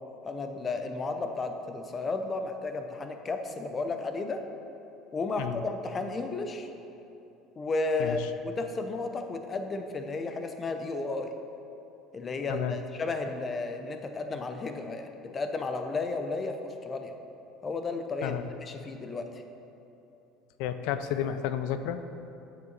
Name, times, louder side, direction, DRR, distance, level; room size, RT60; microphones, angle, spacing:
voice 1, 0.2-4.4 5.1-6.7 7.6-11.3 12.1-17.1 17.6-19.4, left 3 dB, 25° left, 6 dB, 0.6 m, -33 dB
voice 2, 8.0-8.3 12.5-12.8 18.2-18.5 20.6-22.0, left 10 dB, 75° left, 10 dB, 0.5 m, -31 dB
8.8 x 6.8 x 4.0 m, 3.0 s
cardioid pair, 130°, 0 cm